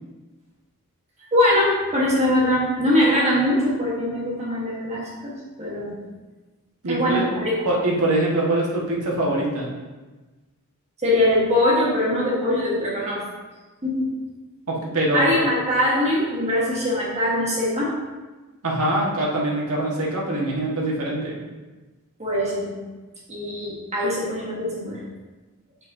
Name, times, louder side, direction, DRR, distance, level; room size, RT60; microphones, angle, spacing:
voice 1, 1.3-6.0 6.9-7.5 11.0-13.2 13.8-14.1 15.1-17.9 22.2-22.8 23.3-25.0, left 1 dB, 30° right, -6 dB, 1.4 m, -22 dB
voice 2, 6.8-7.2 7.6-9.7 14.7-15.4 18.6-21.4, right 1 dB, 80° right, -4 dB, 1.5 m, -23 dB
7.4 x 5.3 x 2.7 m, 1.2 s
head